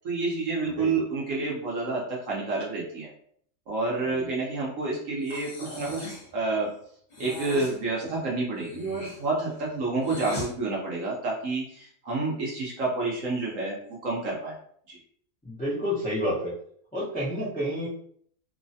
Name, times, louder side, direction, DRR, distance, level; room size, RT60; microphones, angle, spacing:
voice 1, 0.0-3.1 3.7-6.7 7.2-13.8 14.0-14.6 14.9-15.0, right 3 dB, 60° right, -4 dB, 0.9 m, -29 dB
voice 2, 0.6-1.0 4.1-4.3 15.4-16.5 16.9-17.9, equal, 10° left, -8 dB, 0.3 m, -30 dB
Breathing, 5.2-6.3 7.1-7.8 8.5-10.5, left 1 dB, 35° left, 0.7 m, -39 dB
3.0 x 2.1 x 2.6 m, 0.62 s
omnidirectional pair, 1.8 m